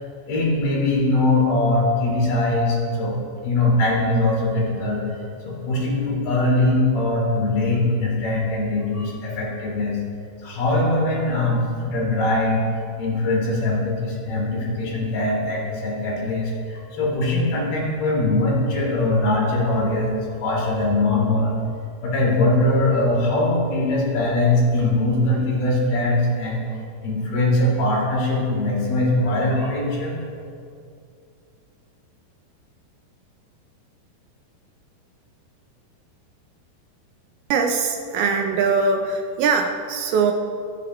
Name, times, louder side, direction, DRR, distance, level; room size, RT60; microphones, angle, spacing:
voice 1, 0.3-3.2 3.4-5.0 5.4-10.0 10.4-12.6 13.0-21.6 22.0-26.6 27.0-30.2, left 2 dB, 60° left, -4 dB, 5.3 m, -21 dB
voice 2, 37.5-40.3, right 5 dB, 75° right, 3 dB, 2.3 m, -21 dB
20.5 x 14.5 x 3.1 m, 2.4 s
omnidirectional pair, 5.2 m